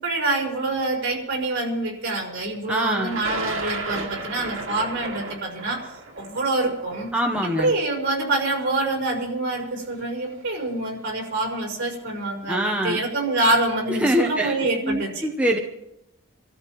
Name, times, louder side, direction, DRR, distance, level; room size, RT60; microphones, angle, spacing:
voice 1, 0.0-5.9 6.2-7.1 7.4-15.3, right 2 dB, 55° right, -2 dB, 5.2 m, -26 dB
voice 2, 2.7-3.2 7.1-7.7 12.5-13.0 14.0-14.5 14.8-15.6, equal, 5° right, 1 dB, 0.8 m, -23 dB
Thunder, 3.0-9.1 10.0-10.1 11.2-11.5 11.8-12.3, right 3 dB, 70° right, 2.1 m, -34 dB
29.0 x 13.5 x 3.0 m, 0.86 s
head